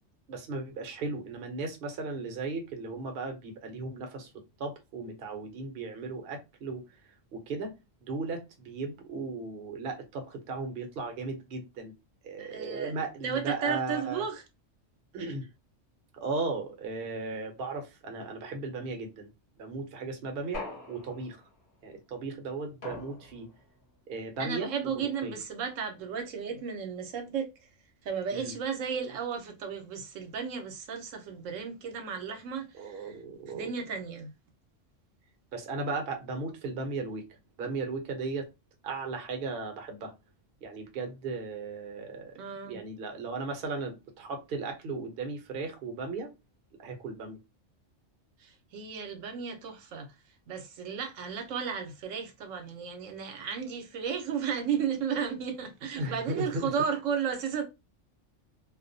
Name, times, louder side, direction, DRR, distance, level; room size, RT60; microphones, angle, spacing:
voice 1, 0.3-4.3 4.6-7.0 7.3-7.7 8.0-11.9 12.2-14.2 15.1-15.4 16.2-19.3 19.6-21.4 21.8-23.5 24.1-25.4 28.3-28.5 32.7-33.7 35.5-38.5 38.8-40.1 40.6-42.4 42.6-46.3 46.8-47.4 56.0-56.7, right 3 dB, 55° right, 0.8 m, -36 dB
voice 2, 12.4-12.9 13.2-14.4 24.4-27.5 28.0-33.1 33.5-34.3 42.4-42.8 48.4-50.1 50.5-57.6, right 6 dB, 80° right, 1.0 m, -34 dB
sound 1, 20.5-21.5 22.8-23.7, left 3 dB, 50° left, 0.9 m, -42 dB
2.3 x 2.1 x 2.5 m
omnidirectional pair, 1.3 m